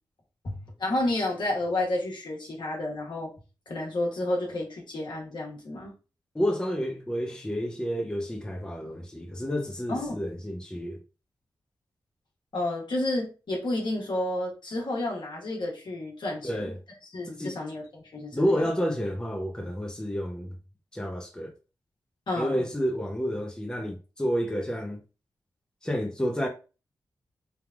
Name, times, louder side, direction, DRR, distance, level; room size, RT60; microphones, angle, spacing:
voice 1, 0.4-3.3 3.7-5.9 9.9-10.2 12.5-16.7 17.1-18.4 22.3-22.6, left 1 dB, 65° left, 1.3 m, -30 dB
voice 2, 6.3-11.0 16.4-16.8 17.3-17.6 18.3-20.5 20.9-21.5 22.4-25.0 25.8-26.5, equal, 10° left, 0.6 m, -30 dB
3.3 x 2.3 x 2.3 m
cardioid pair, 50°, 8 cm